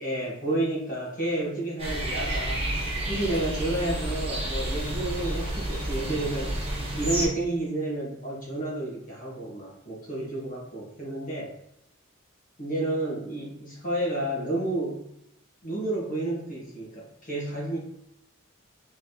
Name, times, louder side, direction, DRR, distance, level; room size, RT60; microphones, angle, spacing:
voice 1, 0.0-2.7 3.1-6.6 7.0-11.5 12.6-15.0 15.6-17.8, right 2 dB, 40° left, -5 dB, 1.6 m, -30 dB
sound 1, 1.8-7.3, right 1 dB, 30° right, 1.3 m, -30 dB
4.2 x 3.5 x 2.9 m, 0.80 s
head